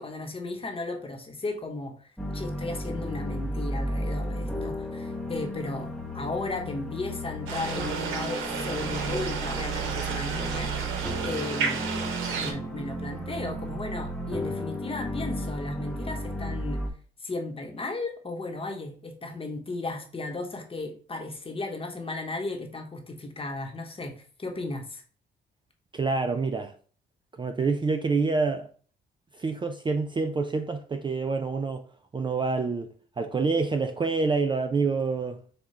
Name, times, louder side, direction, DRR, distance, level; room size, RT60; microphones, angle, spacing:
voice 1, 0.0-2.0 2.3-11.9 12.3-16.8 17.2-25.0, left 2 dB, 30° left, 1.1 m, -35 dB
sound 1, 2.2-16.9, right 1 dB, 5° left, 0.9 m, -33 dB
sound 2, 7.5-12.5, right 5 dB, 85° right, 0.8 m, -32 dB
voice 2, 25.9-26.7 27.4-28.7 29.3-31.8 32.1-35.4, right 4 dB, 25° right, 0.4 m, -27 dB
5.6 x 2.3 x 3.2 m
cardioid pair, 90°, 20 cm